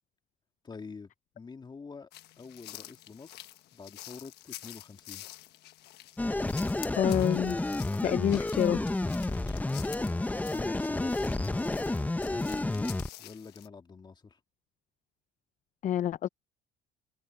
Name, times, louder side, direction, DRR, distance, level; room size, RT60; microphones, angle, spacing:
voice 1, 0.6-2.1 2.4-5.3 9.2-9.6 10.5-11.1 11.5-12.9 13.2-14.4, left 4 dB, 25° left, 2.3 m, -47 dB
sound 1, 2.1-13.7, left 14 dB, 80° left, 1.3 m, -49 dB
sound 2, 6.2-13.1, left 2 dB, 10° left, 0.8 m, -30 dB
voice 2, 7.0-7.6 8.0-9.0 15.8-16.3, left 10 dB, 50° left, 0.5 m, -27 dB
open air
cardioid pair, 110°, 17 cm